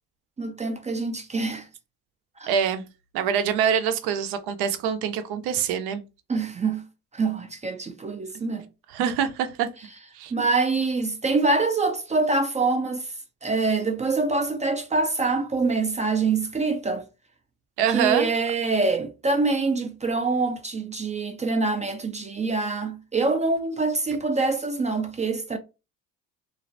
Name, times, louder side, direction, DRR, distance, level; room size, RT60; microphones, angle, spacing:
voice 1, 0.4-1.7 2.4-2.5 6.3-6.8 7.1-8.7 10.3-13.2 13.4-17.0 17.9-25.6, right 3 dB, 20° right, 0.3 m, -25 dB
voice 2, 2.5-2.8 3.1-6.0 8.9-9.7 10.1-10.3 17.8-18.3, right 8 dB, 75° right, 0.6 m, -24 dB
2.4 x 2.0 x 2.5 m
supercardioid pair, 75°, 39 cm